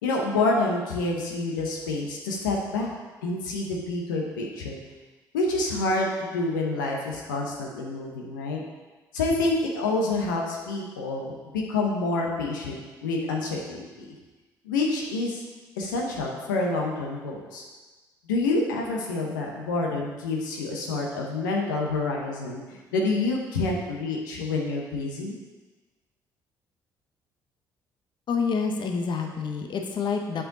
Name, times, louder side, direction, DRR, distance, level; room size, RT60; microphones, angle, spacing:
voice 1, 0.0-2.9 3.2-4.8 5.3-8.6 9.1-14.1 14.6-15.4 15.8-17.6 18.3-25.3, left 2 dB, 85° left, -1 dB, 0.8 m, -28 dB
voice 2, 28.3-30.4, left 5 dB, 50° left, 4 dB, 0.8 m, -27 dB
7.6 x 4.8 x 3.9 m, 1.3 s
hypercardioid pair, 50°, 10 cm